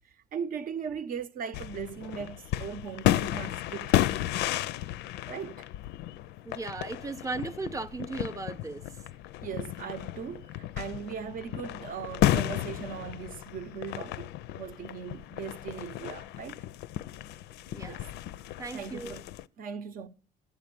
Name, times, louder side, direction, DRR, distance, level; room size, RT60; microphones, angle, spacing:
voice 1, 0.3-4.1 5.3-5.7 9.4-16.6 17.9-18.0 18.7-19.3 19.6-20.1, right 6 dB, 55° right, 0.8 m, -39 dB
sound 1, 1.5-19.5, left 13 dB, 85° left, 0.4 m, -33 dB
voice 2, 6.4-8.8 17.7-18.0 18.6-19.1, right 3 dB, 20° right, 0.7 m, -36 dB
10.5 x 7.5 x 6.8 m
cardioid pair, 110°, 17 cm